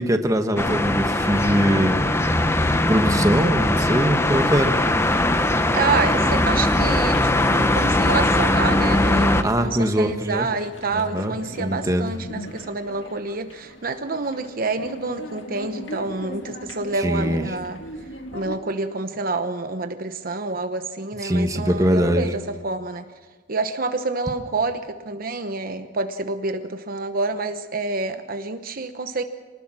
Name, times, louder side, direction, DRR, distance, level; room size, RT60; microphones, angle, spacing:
voice 1, 0.0-2.0 2.9-4.7 9.4-10.5 10.9-12.1 17.0-17.4 21.2-22.3, equal, 20° right, 6 dB, 1.3 m, -22 dB
sound 1, 0.6-9.4, left 1 dB, 15° left, 1.0 m, -20 dB
voice 2, 5.7-17.8 18.3-23.1 23.5-29.2, right 3 dB, 50° right, 8 dB, 1.0 m, -28 dB
sound 2, 7.1-18.6, left 1 dB, 80° left, 1.9 m, -39 dB
24.0 x 19.5 x 6.1 m, 1.4 s
head